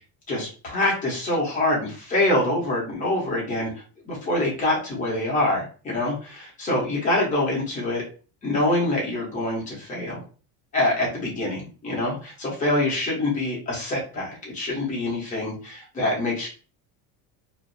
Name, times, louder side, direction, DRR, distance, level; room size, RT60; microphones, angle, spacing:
voice 1, 0.3-3.7 4.1-8.0 8.4-10.2 10.7-16.5, left 1 dB, 20° left, -3 dB, 0.7 m, -25 dB
2.4 x 2.0 x 2.5 m, 0.36 s
cardioid pair, 175°, 43 cm